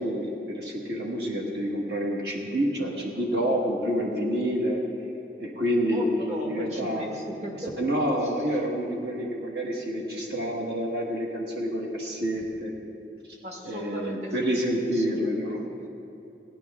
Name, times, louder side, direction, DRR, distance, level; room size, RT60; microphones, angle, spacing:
voice 1, 0.0-4.8 5.4-6.1 6.5-7.1 7.8-12.7 13.3-13.4 13.6-15.6, equal, 65° right, -2 dB, 1.4 m, -28 dB
voice 2, 5.9-7.7 8.2-8.3 13.4-14.6 14.9-15.4 15.7-15.9, equal, 40° right, -1 dB, 1.5 m, -38 dB
18.5 x 10.0 x 3.6 m, 2.8 s
head